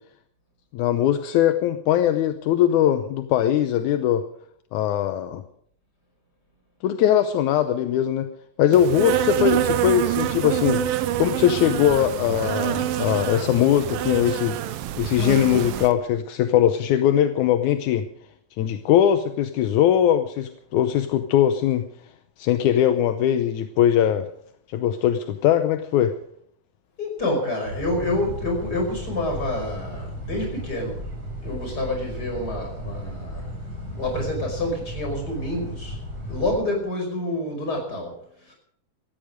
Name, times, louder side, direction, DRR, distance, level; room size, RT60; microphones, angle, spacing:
voice 1, 0.7-4.2 4.7-5.4 6.8-8.3 8.6-10.8 11.2-14.6 15.0-18.1 18.6-21.9 22.4-24.3 24.7-26.1, left 10 dB, 75° left, 9 dB, 1.9 m, -21 dB
Insect, 8.7-15.9, right 12 dB, 75° right, 2.5 m, -26 dB
voice 2, 27.0-31.0 31.4-33.6 33.9-36.0 36.3-38.1 38.5-38.6, left 1 dB, 25° left, 2 dB, 5.8 m, -28 dB
sound 1, 27.7-36.6, equal, 40° right, 8.1 m, -35 dB
18.0 x 14.0 x 5.1 m, 0.67 s
omnidirectional pair, 4.2 m